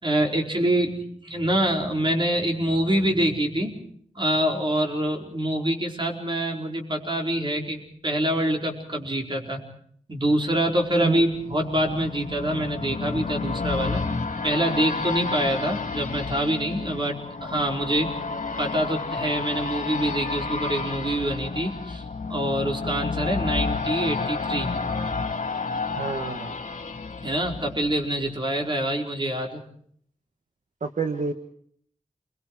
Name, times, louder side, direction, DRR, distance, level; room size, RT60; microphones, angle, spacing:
voice 1, 0.0-3.8 4.2-9.6 10.1-14.1 14.4-18.1 18.6-22.0 22.3-24.7 27.2-29.6, right 1 dB, 35° right, 2 dB, 4.6 m, -25 dB
sound 1, 10.6-28.3 28.7-28.8, left 4 dB, 75° left, 2.1 m, -31 dB
voice 2, 26.0-26.5 30.8-31.3, right 4 dB, 65° right, 5 dB, 1.4 m, -28 dB
29.0 x 22.5 x 4.8 m, 0.62 s
wide cardioid pair, 75°, 14 cm